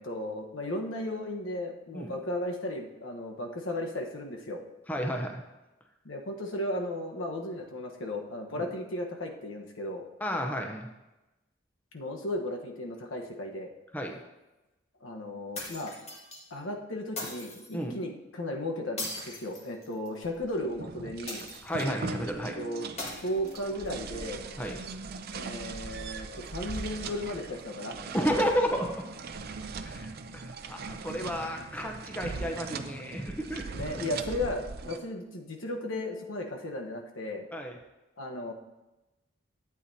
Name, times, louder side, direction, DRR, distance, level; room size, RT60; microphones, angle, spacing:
voice 1, 0.0-4.6 6.0-10.0 11.9-13.7 15.0-15.9 16.5-21.5 22.5-22.9 23.2-24.4 25.3-28.0 33.7-37.5 38.2-38.5, left 1 dB, 80° left, 1 dB, 1.2 m, -35 dB
voice 2, 4.9-5.4 8.5-8.6 10.2-10.9 13.9-14.2 17.7-18.0 21.6-22.6 24.6-24.8 28.1-28.9 29.8-30.1 30.4-33.7 37.5-37.8, equal, 10° left, 2 dB, 0.8 m, -31 dB
sound 1, 15.5-16.4 17.2-17.7 19.0-20.2 21.3-21.9 23.0-23.9, left 2 dB, 35° left, 2.0 m, -39 dB
sound 2, 20.2-35.0, right 4 dB, 50° right, 0.5 m, -40 dB
12.0 x 8.4 x 2.8 m, 1.0 s
head